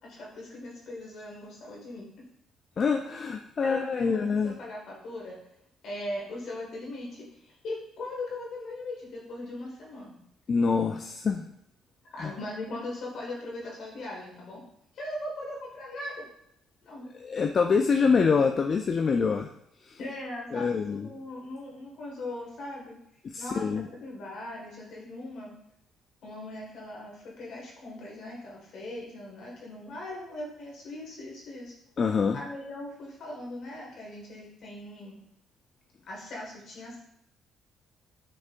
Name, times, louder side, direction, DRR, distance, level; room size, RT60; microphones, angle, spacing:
voice 1, 0.0-2.1 3.6-5.4 5.8-10.2 12.1-14.6 14.9-16.3 16.8-17.0 20.0-22.9 23.4-23.7 24.0-25.5 26.2-31.7 32.3-35.2 36.1-37.0, left 1 dB, 65° left, -3 dB, 1.7 m, -39 dB
voice 2, 2.8-4.5 10.5-11.5 12.2-12.3 17.2-19.5 19.9-20.0 20.5-21.1 23.3-23.9 32.0-32.4, left 5 dB, 45° left, 4 dB, 0.3 m, -25 dB
5.3 x 3.4 x 2.5 m, 0.75 s
cardioid pair, 85°, 0 cm